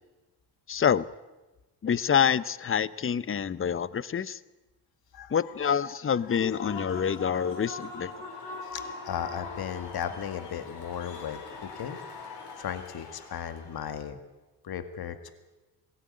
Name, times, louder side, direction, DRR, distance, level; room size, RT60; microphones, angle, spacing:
voice 1, 0.7-1.1 1.8-4.4 5.3-8.1, left 7 dB, 30° left, 18 dB, 0.8 m, -27 dB
voice 2, 5.1-6.0 6.3-6.9 8.6-12.0 12.6-14.2 14.6-15.3, left 8 dB, 60° left, 9 dB, 2.1 m, -37 dB
Human voice / Cheering / Applause, 6.1-13.8, left 3 dB, 80° left, 5.3 m, -42 dB
21.5 x 17.5 x 9.6 m, 1.1 s
cardioid pair, 100°, 42 cm